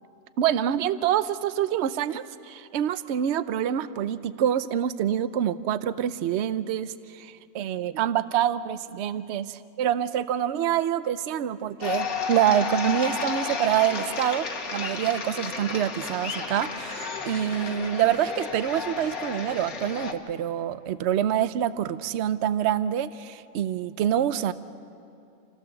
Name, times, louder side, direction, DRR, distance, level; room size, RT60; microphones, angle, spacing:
voice 1, 0.4-14.5 14.7-24.5, right 10 dB, 60° right, 14 dB, 0.8 m, -26 dB
sound 1, 11.8-20.1, left 5 dB, 85° left, 1.8 m, -32 dB
27.5 x 15.5 x 6.9 m, 2.5 s
omnidirectional pair, 1.5 m